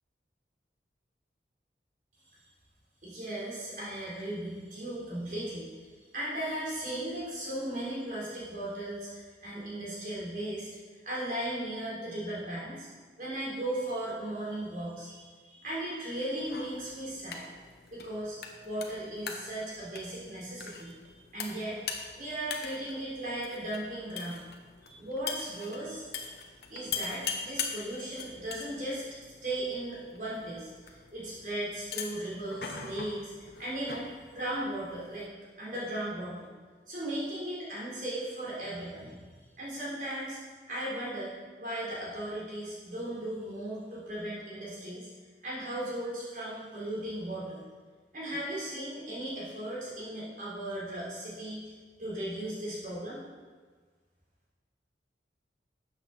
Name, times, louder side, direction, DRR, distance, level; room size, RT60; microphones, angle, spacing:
voice 1, 3.0-5.7 6.1-10.7 11.0-12.9 13.2-17.4 17.9-18.4 18.6-21.8 22.2-24.4 24.8-26.1 26.7-29.0 29.4-34.1 34.3-35.3 35.6-36.5 36.9-39.2 39.6-40.4 40.7-41.3 41.6-45.1 45.4-47.6 48.1-51.6 52.0-53.2, right 1 dB, 45° right, -7 dB, 3.9 m, -37 dB
sound 1, 16.4-35.3, left 6 dB, 60° left, 1.1 m, -42 dB
13.0 x 8.1 x 4.2 m, 1.5 s
head